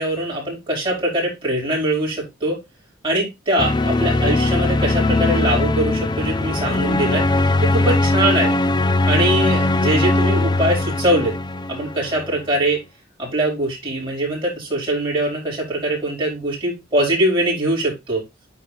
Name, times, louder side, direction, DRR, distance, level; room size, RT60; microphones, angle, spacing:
voice 1, 0.0-2.6 3.0-7.2 7.6-8.5 9.1-11.3 11.7-12.8 13.2-18.2, right 1 dB, 25° right, -2 dB, 4.4 m, -22 dB
sound 1, 3.6-12.4, left 2 dB, 20° left, 0.5 m, -20 dB
9.2 x 3.6 x 4.2 m, 0.22 s
head